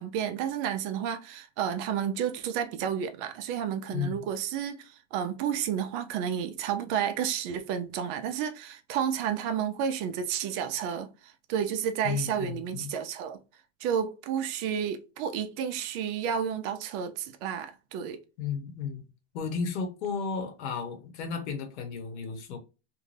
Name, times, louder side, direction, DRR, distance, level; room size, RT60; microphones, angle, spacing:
voice 1, 0.0-13.4 13.8-18.2, right 8 dB, 45° right, 0.5 m, -31 dB
voice 2, 3.9-4.2 12.0-12.9 18.4-19.0 19.3-22.6, left 6 dB, 75° left, 1.0 m, -33 dB
2.7 x 2.1 x 3.2 m
supercardioid pair, 135°, 34 cm